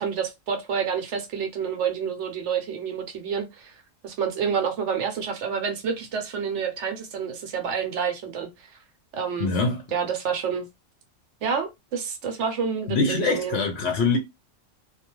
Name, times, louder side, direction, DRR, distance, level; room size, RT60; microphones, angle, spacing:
voice 1, 0.0-3.7 4.0-8.7 9.1-9.5 9.9-10.7 11.4-13.6, right 6 dB, 65° right, 0.9 m, -28 dB
voice 2, 9.4-9.8 12.9-14.2, left 4 dB, 65° left, 0.8 m, -23 dB
2.3 x 2.3 x 3.0 m
omnidirectional pair, 1.4 m